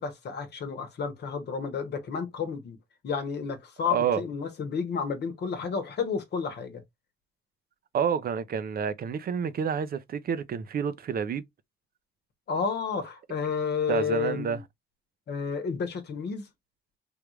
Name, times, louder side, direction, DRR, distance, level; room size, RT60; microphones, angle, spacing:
voice 1, 0.0-2.8 3.0-6.8 12.5-14.6 15.3-16.5, left 6 dB, 55° left, 1.0 m, -31 dB
voice 2, 7.9-11.4 13.9-14.6, right 7 dB, 50° right, 0.5 m, -29 dB
3.4 x 2.4 x 3.0 m
cardioid pair, 90°, 20 cm